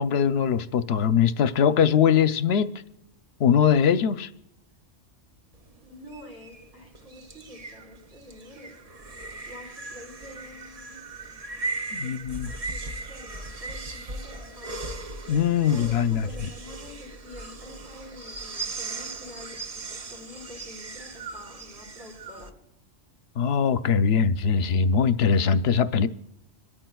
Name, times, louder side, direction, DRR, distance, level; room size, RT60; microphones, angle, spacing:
voice 1, 0.0-2.7 3.4-4.3 11.9-12.5 15.3-16.3 23.4-26.1, left 7 dB, 60° left, 0.8 m, -21 dB
sound 1, 5.5-22.5, right 3 dB, 40° right, 0.5 m, -38 dB
voice 2, 5.8-8.8 9.5-11.0 12.0-12.2 12.5-15.0 15.6-22.5, left 1 dB, 70° right, 4.5 m, -47 dB
27.0 x 13.5 x 2.3 m
omnidirectional pair, 1.3 m